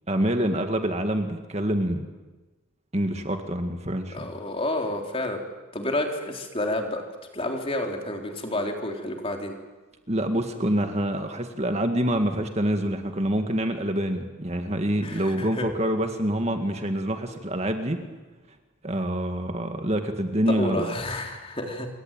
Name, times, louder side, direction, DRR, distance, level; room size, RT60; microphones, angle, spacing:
voice 1, 0.1-2.1 2.9-4.3 10.1-18.0 18.8-20.9, right 1 dB, 30° right, 6 dB, 2.0 m, -26 dB
voice 2, 4.1-5.4 5.7-7.0 7.3-9.5 15.0-15.7 20.5-21.9, left 1 dB, 25° left, 2 dB, 3.8 m, -29 dB
27.5 x 23.5 x 9.2 m, 1.2 s
head